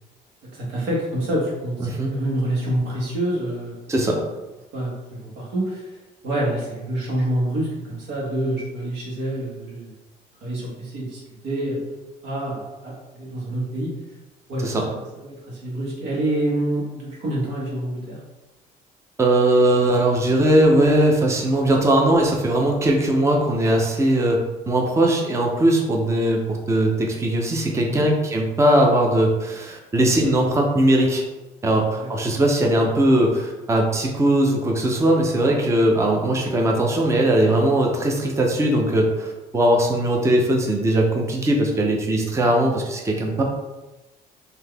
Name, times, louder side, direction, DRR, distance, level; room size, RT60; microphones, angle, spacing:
voice 1, 0.5-3.7 4.7-6.0 6.2-9.9 10.4-11.8 12.2-13.9 14.5-15.0 15.2-18.2 27.8-28.0 31.7-32.1, right 1 dB, 90° right, -4 dB, 1.4 m, -27 dB
voice 2, 1.8-2.1 3.9-4.2 14.6-14.9 19.2-31.2 31.6-43.4, right 1 dB, 15° right, 1 dB, 0.6 m, -19 dB
3.8 x 2.8 x 3.4 m, 1.1 s
cardioid pair, 110°, 17 cm